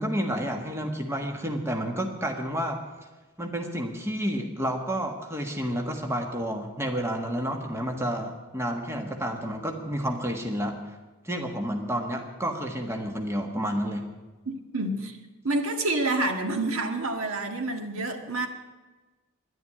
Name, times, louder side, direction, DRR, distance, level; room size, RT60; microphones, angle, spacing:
voice 1, 0.0-2.8 3.4-10.9 11.2-14.1, equal, 10° right, 3 dB, 1.4 m, -30 dB
voice 2, 14.5-15.2 15.4-18.5, right 2 dB, 70° right, 5 dB, 1.7 m, -28 dB
11.0 x 10.5 x 9.8 m, 1.2 s
head